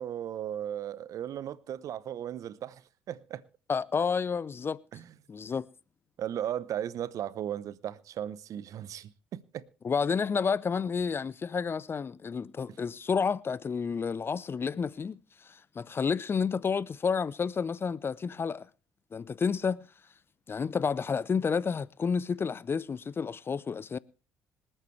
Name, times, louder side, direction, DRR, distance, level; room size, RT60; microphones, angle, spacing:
voice 1, 0.0-3.4 4.9-5.1 6.2-9.6, right 10 dB, 60° right, 0.8 m, -36 dB
voice 2, 3.7-4.8 5.3-5.7 9.8-15.2 15.5-18.7 19.1-19.9 20.5-24.0, left 5 dB, 40° left, 0.6 m, -30 dB
26.5 x 9.0 x 3.2 m
hypercardioid pair, 50°, 6 cm